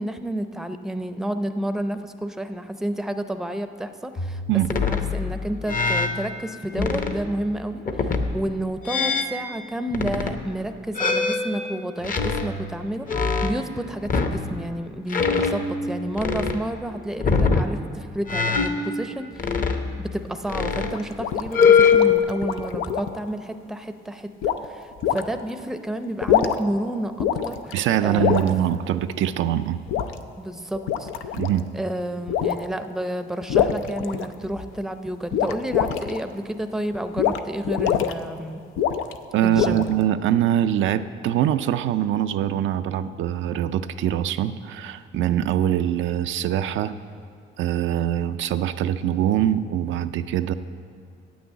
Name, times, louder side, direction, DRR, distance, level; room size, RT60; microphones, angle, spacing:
voice 1, 0.0-4.4 4.7-19.6 20.0-28.4 30.4-31.4 31.7-38.6 39.4-39.9, right 1 dB, ahead, 8 dB, 0.5 m, -30 dB
sound 1, 4.2-6.1 6.7-7.3 7.9-8.4 8.9-9.4 9.9-10.4 11.0-13.7 14.1-14.5 15.1-15.9 16.2-16.6 17.2-17.7 18.3-20.2 20.5-21.0 21.5-22.2, left 5 dB, 45° left, 0.8 m, -23 dB
sound 2, 20.9-23.2 24.4-24.6 25.0-25.2 26.1-26.8 27.2-27.7 28.2-28.5 29.9-30.1 30.7-31.6 32.3-32.7 33.5-34.6 35.3-36.2 37.2-37.4 37.6-38.1 38.8-39.2 39.5-40.0, left 9 dB, 90° left, 0.5 m, -24 dB
voice 2, 27.7-29.8 31.3-31.7 39.3-47.0 47.6-50.5, right 11 dB, 75° right, 10 dB, 0.4 m, -23 dB
8.5 x 6.3 x 8.2 m, 2.4 s
cardioid pair, 90°, 20 cm